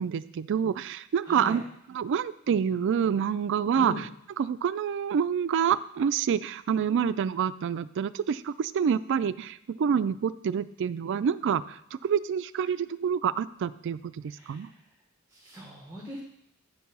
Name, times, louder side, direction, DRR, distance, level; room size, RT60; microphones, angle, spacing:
voice 1, 0.0-1.6 1.9-4.1 4.4-11.8 12.0-14.1 14.5-14.7, right 7 dB, 55° right, 15 dB, 0.3 m, -27 dB
voice 2, 1.2-1.6 3.8-4.0 14.3-14.7 15.3-16.2, equal, 15° right, -3 dB, 1.2 m, -40 dB
9.3 x 4.6 x 5.4 m, 0.73 s
head